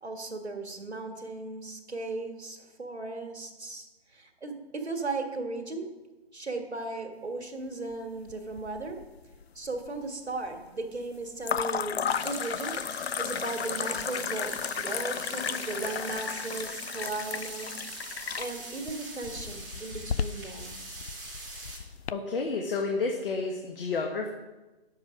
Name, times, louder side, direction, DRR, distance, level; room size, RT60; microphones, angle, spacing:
voice 1, 0.0-3.9 4.1-5.9 6.3-9.0 9.6-12.0 12.2-12.7 13.2-17.7 18.1-20.8, right 3 dB, 90° right, 4 dB, 1.9 m, -36 dB
sound 1, 8.3-9.0 9.3-10.0 11.4-22.1, left 7 dB, 75° left, 0.5 m, -34 dB
sound 2, 12.1-21.8, right 2 dB, ahead, 0.4 m, -43 dB
voice 2, 22.1-24.3, left 4 dB, 60° left, 2 dB, 1.3 m, -30 dB
10.5 x 7.4 x 5.1 m, 1.1 s
figure-of-eight pair, 145°, 32 cm